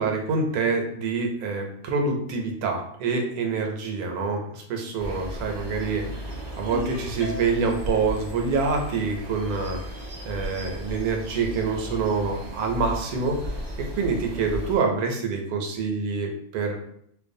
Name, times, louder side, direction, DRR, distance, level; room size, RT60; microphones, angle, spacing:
voice 1, 0.0-6.0 6.6-9.8 10.2-16.8, right 4 dB, 80° right, 2 dB, 1.0 m, -26 dB
sound 1, 5.0-14.8, equal, 60° right, 0.4 m, -35 dB
Ringtone, 6.7-7.9, left 4 dB, 65° left, 0.6 m, -36 dB
2.5 x 2.2 x 2.5 m, 0.70 s
omnidirectional pair, 1.6 m